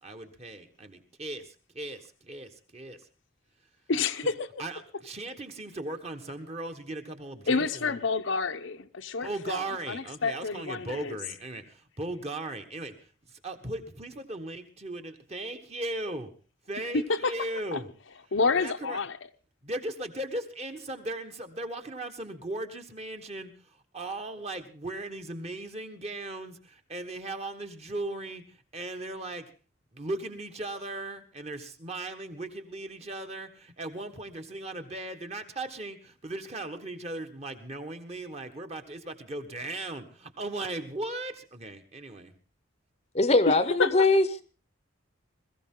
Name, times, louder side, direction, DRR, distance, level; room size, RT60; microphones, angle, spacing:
voice 1, 0.0-3.0 4.6-8.0 9.2-12.9 13.3-16.3 16.7-17.9 18.5-19.0 19.6-29.5 29.9-42.3, right 2 dB, 30° right, 1.5 m, -37 dB
voice 2, 3.9-4.5 7.5-11.2 16.9-17.3 17.7-17.8 18.3-19.2 43.5-43.9, left 4 dB, 70° left, 0.8 m, -28 dB
voice 3, 43.1-44.4, left 2 dB, 30° left, 0.8 m, -22 dB
21.5 x 15.0 x 3.8 m
head